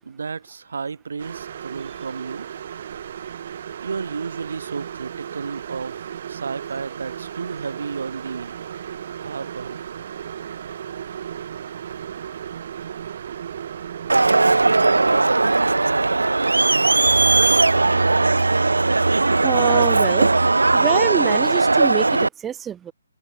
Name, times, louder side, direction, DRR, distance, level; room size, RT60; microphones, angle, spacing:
voice 1, 0.0-2.5 3.8-8.6 9.2-9.8, right 5 dB, 65° right, 7.1 m, -32 dB
sound 1, 1.2-15.2, right 9 dB, 50° right, 2.3 m, -35 dB
Crowd, 14.1-22.3, right 3 dB, 85° right, 0.9 m, -18 dB
voice 2, 19.3-20.3 20.7-22.9, right 9 dB, 10° right, 2.3 m, -26 dB
open air
figure-of-eight pair, 145°, 0 cm